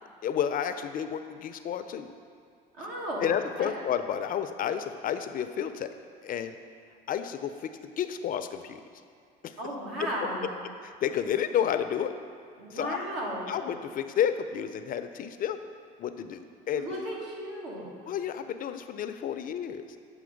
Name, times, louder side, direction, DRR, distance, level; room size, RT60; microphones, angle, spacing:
voice 1, 0.2-2.1 3.2-5.9 6.2-6.6 7.1-8.8 9.4-9.5 10.0-10.1 10.8-12.1 12.7-13.0 13.5-15.6 16.0-16.9 18.1-20.0, left 9 dB, 45° left, 9 dB, 0.4 m, -31 dB
voice 2, 2.8-3.3 3.6-3.7 9.6-10.5 12.6-13.5 16.2-16.3 16.8-17.8, right 1 dB, 80° right, -4 dB, 1.6 m, -35 dB
7.8 x 3.1 x 5.1 m, 2.3 s
supercardioid pair, 80°, 20 cm